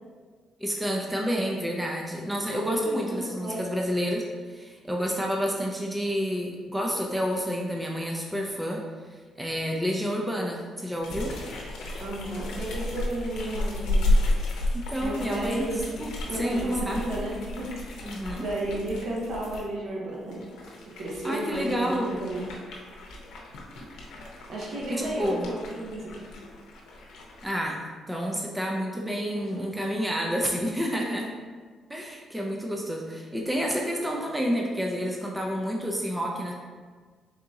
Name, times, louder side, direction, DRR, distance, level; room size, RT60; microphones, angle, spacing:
voice 1, 0.6-4.2 4.5-8.8 9.1-11.3 14.7-15.7 16.0-16.1 16.4-17.0 18.0-18.5 21.2-22.1 24.9-25.5 27.4-27.8 28.1-31.3 31.9-36.5, equal, 10° right, -1 dB, 0.5 m, -29 dB
voice 2, 2.5-3.6 12.0-14.0 15.0-15.9 16.3-18.0 18.4-20.4 21.0-22.5 24.5-26.3 29.3-29.8, right 1 dB, 65° right, -4 dB, 1.1 m, -33 dB
sound 1, 11.0-19.6 20.2-27.5, left 1 dB, 85° left, 0.7 m, -32 dB
3.9 x 2.8 x 3.6 m, 1.5 s
cardioid pair, 90°, 0 cm